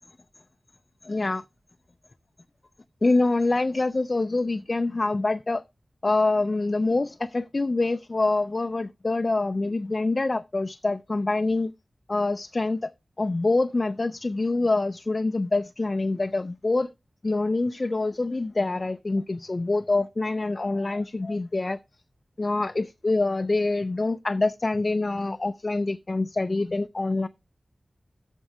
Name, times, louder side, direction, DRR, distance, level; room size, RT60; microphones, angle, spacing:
voice 1, 1.0-1.4 3.0-5.6 6.0-11.7 12.1-12.9 13.2-16.9 17.2-21.8 22.4-27.3, left 2 dB, 40° left, 0.4 m, -25 dB
13.5 x 4.5 x 4.9 m
wide cardioid pair, 90°, 0 cm